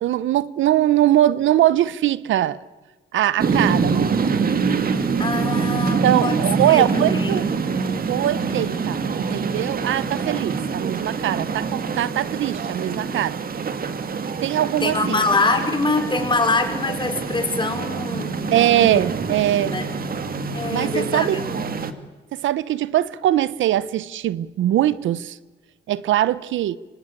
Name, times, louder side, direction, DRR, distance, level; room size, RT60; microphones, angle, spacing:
voice 1, 0.0-2.6 3.1-4.5 6.0-7.5 8.1-13.4 14.4-15.2 18.5-19.8 20.7-21.4 22.3-25.4 25.9-26.8, right 13 dB, 75° right, 0.9 m, -21 dB
sound 1, 3.4-21.9, right 5 dB, 45° right, 2.2 m, -25 dB
voice 2, 5.2-6.4 6.7-7.5 14.8-19.0 19.6-19.8 20.5-21.6, left 3 dB, 25° left, 5.1 m, -24 dB
26.0 x 25.0 x 8.5 m
cardioid pair, 90°, 20 cm